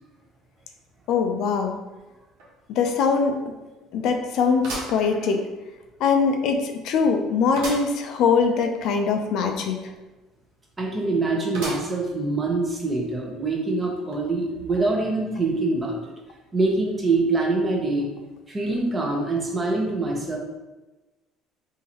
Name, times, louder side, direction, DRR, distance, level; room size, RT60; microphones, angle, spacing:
voice 1, 1.1-1.7 2.8-3.3 3.9-5.4 6.0-9.8, left 5 dB, 65° left, 4 dB, 0.4 m, -22 dB
sound 1, 2.4-2.5 2.9-3.0 4.6-5.7 6.2-6.3 7.6-8.0 8.4-8.5 8.7-8.8 11.5-12.2 12.7-12.8 13.8-13.9, right 2 dB, 80° right, 1.1 m, -35 dB
voice 2, 10.8-16.0 16.5-18.1 18.5-20.4, right 3 dB, 20° right, -1 dB, 0.8 m, -24 dB
3.7 x 2.6 x 2.9 m, 1.1 s
supercardioid pair, 100°, 0 cm